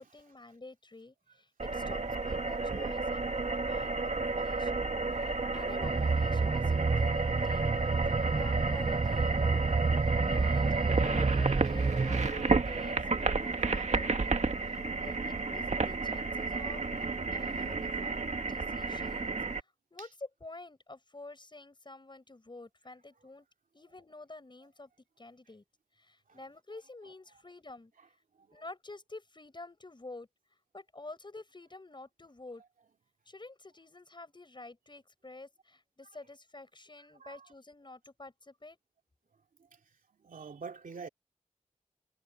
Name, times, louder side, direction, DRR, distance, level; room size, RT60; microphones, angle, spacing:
voice 1, 0.0-9.7 10.3-19.4 19.9-20.1 20.4-23.5 23.7-24.9 25.2-25.6 26.0-27.9 28.5-30.3 30.7-32.6 33.3-38.8, left 2 dB, 35° left, 5.9 m, -49 dB
sound 1, 1.6-19.6, right 3 dB, 60° right, 1.7 m, -32 dB
sound 2, 5.8-12.3, right 4 dB, 35° right, 0.6 m, -29 dB
voice 2, 17.4-18.1 20.0-20.1 26.3-26.4 28.0-28.1 28.4-28.6 37.2-37.5 39.6-39.8 40.1-41.1, right 5 dB, 90° right, 2.7 m, -49 dB
wide cardioid pair, 85°, 14 cm